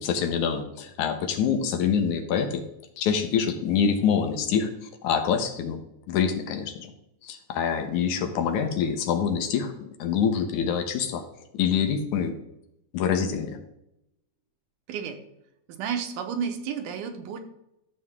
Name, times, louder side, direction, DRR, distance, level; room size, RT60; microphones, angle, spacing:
voice 1, 0.0-2.6 3.0-4.7 5.0-6.9 7.2-11.2 11.5-12.3 12.9-13.6, left 7 dB, 75° left, 6 dB, 2.4 m, -26 dB
voice 2, 14.9-15.2 15.7-17.4, right 7 dB, 80° right, 6 dB, 2.5 m, -31 dB
13.5 x 7.4 x 3.6 m, 0.84 s
omnidirectional pair, 3.7 m